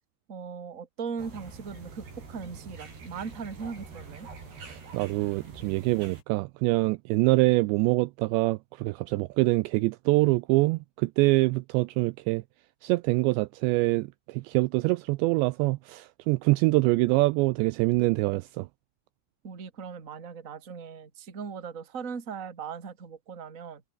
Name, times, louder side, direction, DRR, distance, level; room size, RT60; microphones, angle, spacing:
voice 1, 0.3-4.3 19.4-23.8, right 6 dB, 30° right, 1.6 m, -39 dB
sound 1, 1.2-6.2, right 4 dB, 55° right, 9.5 m, -45 dB
voice 2, 4.6-12.4 12.8-18.7, right 22 dB, 90° right, 2.5 m, -25 dB
omnidirectional pair, 5.7 m